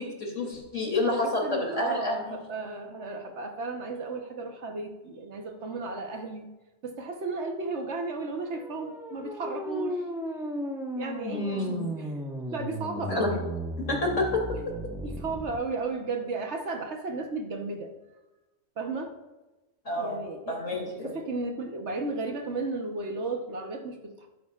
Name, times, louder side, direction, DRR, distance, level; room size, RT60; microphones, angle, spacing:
voice 1, 0.0-2.4 11.2-11.9 13.1-13.3 13.8-14.4 19.8-20.2 20.5-21.1, left 2 dB, 70° left, -1 dB, 3.3 m, -29 dB
voice 2, 1.0-6.5 6.8-10.0 11.0-12.1 12.5-13.5 15.0-17.9 18.8-19.1 20.0-20.7 21.0-24.3, right 3 dB, 60° right, 4 dB, 1.3 m, -34 dB
sound 1, 8.5-15.6, equal, 5° right, 1.2 m, -35 dB
13.5 x 11.5 x 2.4 m, 1.1 s
omnidirectional pair, 1.3 m